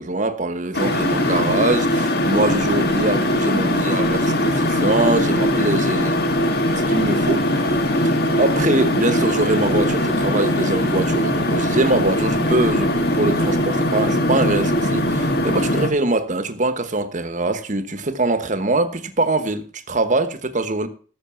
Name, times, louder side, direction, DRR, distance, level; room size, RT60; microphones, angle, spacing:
voice 1, 0.0-6.1 6.7-7.4 8.0-20.9, right 2 dB, 40° right, 1.2 m, -23 dB
sound 1, 0.7-15.9, left 1 dB, 55° left, 1.7 m, -20 dB
13.5 x 6.7 x 7.0 m
head